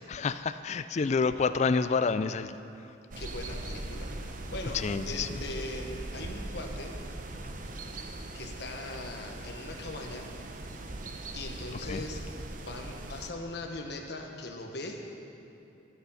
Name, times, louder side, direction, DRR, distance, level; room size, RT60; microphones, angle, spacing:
voice 1, 0.1-2.6 4.8-5.3 11.9-12.0, left 4 dB, 35° left, 12 dB, 0.3 m, -28 dB
sound 1, 3.1-13.3, right 2 dB, 45° right, 0.8 m, -40 dB
voice 2, 3.2-6.9 8.3-10.3 11.3-12.2 12.6-15.0, left 2 dB, 60° left, 2 dB, 1.3 m, -40 dB
20.0 x 6.9 x 5.7 m, 2.7 s
head